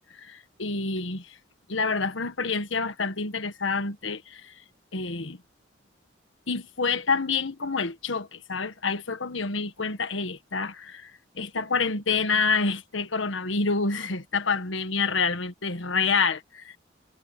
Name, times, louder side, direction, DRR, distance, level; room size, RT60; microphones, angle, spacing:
voice 1, 0.2-1.3 1.7-4.5 4.9-5.4 6.5-16.8, left 4 dB, 85° left, 1.5 m, -28 dB
head